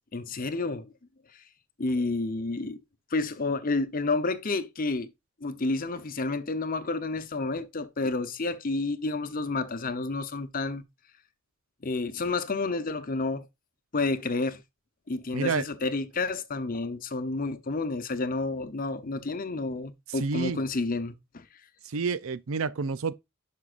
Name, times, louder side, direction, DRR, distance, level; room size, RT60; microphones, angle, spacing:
voice 1, 0.1-0.9 1.8-2.8 3.1-5.1 5.4-10.8 11.8-13.4 13.9-14.6 15.1-21.4, left 3 dB, 45° left, 0.8 m, -30 dB
voice 2, 15.3-15.6 20.2-20.6 21.8-23.1, right 5 dB, 80° right, 0.6 m, -29 dB
11.0 x 5.5 x 2.5 m
head